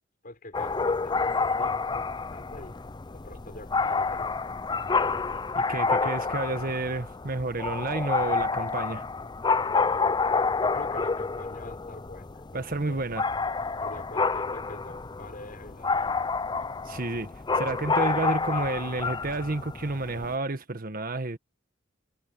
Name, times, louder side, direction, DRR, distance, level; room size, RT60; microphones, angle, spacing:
voice 1, 0.2-2.8 3.1-4.8 10.6-12.4 12.9-13.0 13.8-16.3, left 2 dB, 45° left, 5.6 m, -45 dB
sound 1, 0.5-20.3, left 4 dB, 25° left, 0.5 m, -29 dB
voice 2, 5.5-9.1 12.5-13.2 16.9-21.4, right 2 dB, 50° right, 1.5 m, -30 dB
head